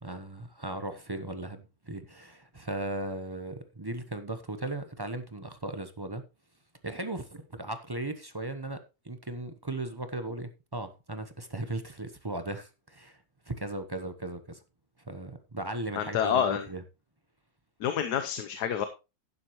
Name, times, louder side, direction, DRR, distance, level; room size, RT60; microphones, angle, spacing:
voice 1, 0.0-6.2 6.8-13.2 13.5-14.6 15.0-16.8, right 2 dB, 20° right, 0.6 m, -37 dB
voice 2, 16.0-16.7 17.8-18.8, left 8 dB, 85° left, 1.4 m, -28 dB
11.5 x 9.7 x 3.0 m
omnidirectional pair, 1.7 m